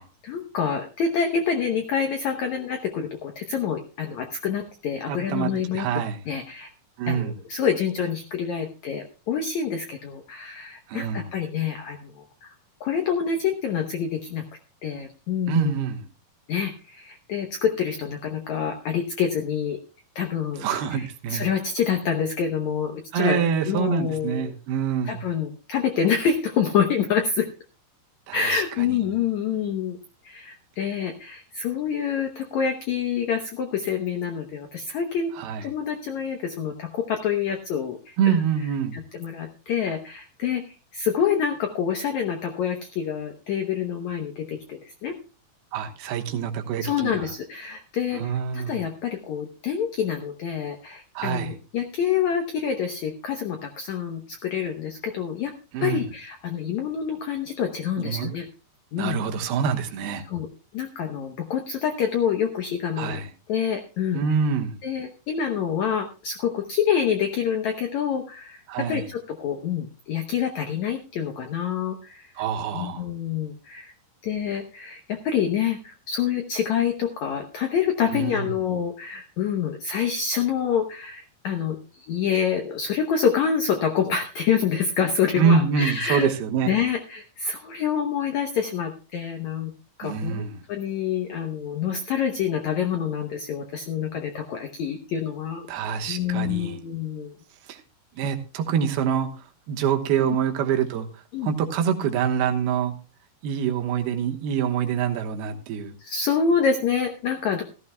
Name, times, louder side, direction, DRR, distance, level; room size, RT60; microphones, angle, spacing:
voice 1, 0.2-5.9 6.3-6.7 7.1-12.1 12.4-12.5 12.8-14.4 14.8-15.8 16.5-19.8 20.1-20.7 20.9-23.4 23.7-24.5 25.0-27.5 28.3-30.0 30.2-35.3 35.6-38.4 38.9-45.2 46.8-55.5 55.8-58.5 58.9-59.2 60.3-60.5 60.7-63.2 63.5-64.2 64.8-68.6 68.9-72.3 72.7-73.9 74.2-86.3 86.7-89.7 90.0-95.7 96.1-97.3 100.2-100.4 101.3-101.5 106.0-107.6, left 7 dB, 75° left, 1.6 m, -27 dB
voice 2, 5.1-6.2 7.0-7.3 10.9-11.3 15.5-16.1 20.6-21.4 23.1-25.2 28.3-28.6 29.1-29.2 35.4-35.7 38.2-39.0 45.7-47.3 48.1-48.8 51.1-51.6 55.7-56.1 58.0-58.3 59.0-60.2 63.0-63.3 64.1-64.8 68.7-69.0 72.4-73.1 78.1-78.5 85.4-86.7 90.0-90.6 95.7-96.8 97.7-97.8 98.2-102.9 103.4-105.9, right 7 dB, 80° right, 3.0 m, -26 dB
15.5 x 14.0 x 2.2 m
omnidirectional pair, 4.6 m